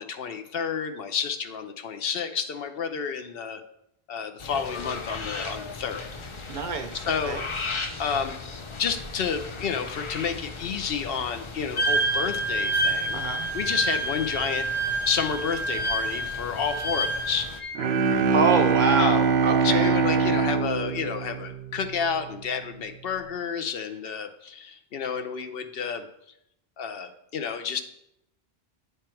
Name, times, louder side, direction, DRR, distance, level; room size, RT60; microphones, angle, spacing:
voice 1, 0.0-3.6 4.1-6.1 7.1-7.4 8.0-8.4 8.8-13.2 13.5-14.7 15.1-17.5 19.0-19.2 19.6-26.1 26.8-27.8, left 6 dB, 70° left, 8 dB, 0.8 m, -30 dB
sound 1, 4.4-17.6, left 4 dB, 40° left, 0.5 m, -38 dB
voice 2, 6.5-7.4 13.1-13.5 18.1-19.9, right 4 dB, 55° right, 7 dB, 0.6 m, -27 dB
Wind instrument woodwind instrument, 11.8-17.7, right 2 dB, 55° left, 1.4 m, -28 dB
Bowed string instrument, 17.7-22.0, right 5 dB, 85° right, 0.9 m, -23 dB
9.4 x 3.4 x 4.4 m, 0.79 s
omnidirectional pair, 1.1 m